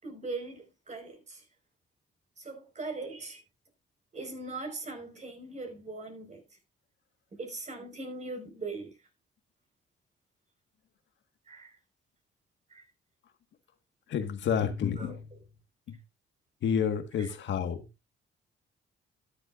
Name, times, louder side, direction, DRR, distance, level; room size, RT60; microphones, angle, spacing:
voice 1, 0.0-1.4 2.4-3.4 4.1-6.4 7.4-8.9 11.5-11.7 12.7-12.8 15.0-15.2 17.2-17.3, right 3 dB, 35° right, 4.7 m, -40 dB
voice 2, 14.1-15.3 16.6-17.9, left 7 dB, 70° left, 1.5 m, -29 dB
12.5 x 10.5 x 2.4 m
cardioid pair, 90°, 20 cm